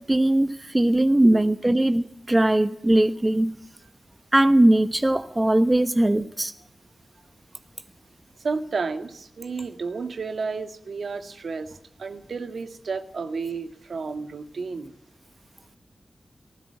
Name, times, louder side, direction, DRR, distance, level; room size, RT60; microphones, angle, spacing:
voice 1, 0.0-3.6 4.3-6.5, right 1 dB, 20° right, 1.0 m, -20 dB
voice 2, 8.4-14.9, right 4 dB, 70° right, 2.0 m, -32 dB
19.5 x 17.5 x 8.7 m
wide cardioid pair, 110°, 0 cm